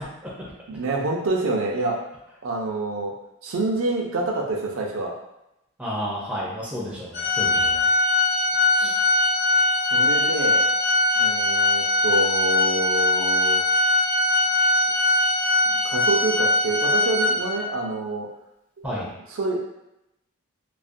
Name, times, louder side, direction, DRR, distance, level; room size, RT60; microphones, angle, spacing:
voice 1, 0.7-2.0 2.4-3.1 3.4-5.1 9.9-10.6 11.2-13.6 15.1-15.2 15.7-18.3 19.3-19.6, right 2 dB, 70° right, 0 dB, 0.5 m, -27 dB
voice 2, 5.8-7.9 8.8-8.9 18.8-19.1, equal, 5° right, -7 dB, 0.4 m, -31 dB
Organ, 7.1-17.8, left 2 dB, 55° left, 0.6 m, -21 dB
2.4 x 2.1 x 2.5 m, 0.88 s
head